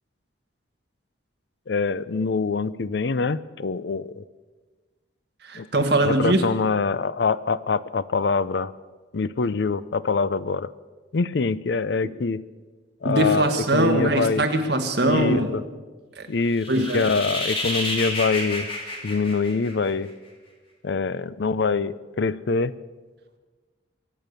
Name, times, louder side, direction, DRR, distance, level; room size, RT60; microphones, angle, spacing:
voice 1, 1.7-4.2 5.5-8.7 9.1-10.7 11.1-12.4 13.0-14.5 15.0-15.6 16.3-18.7 19.0-20.1 20.8-22.7, left 4 dB, 60° left, 17 dB, 0.5 m, -24 dB
voice 2, 5.4-6.4 13.0-15.5 16.2-16.3 16.7-17.1, right 1 dB, 55° right, 5 dB, 1.7 m, -22 dB
sound 1, 16.5-20.1, left 1 dB, 25° left, 3.1 m, -30 dB
23.5 x 8.8 x 6.7 m, 1.3 s
head